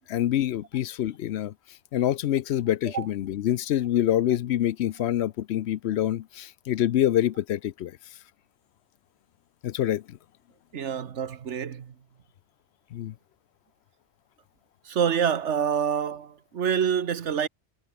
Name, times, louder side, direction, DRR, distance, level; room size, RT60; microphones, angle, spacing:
voice 1, 0.1-1.5 1.9-8.0 9.6-10.2 12.9-13.1, left 12 dB, 70° left, 0.8 m, -26 dB
voice 2, 10.7-11.9 14.8-17.5, right 8 dB, 80° right, 1.4 m, -27 dB
omnidirectional pair, 1.2 m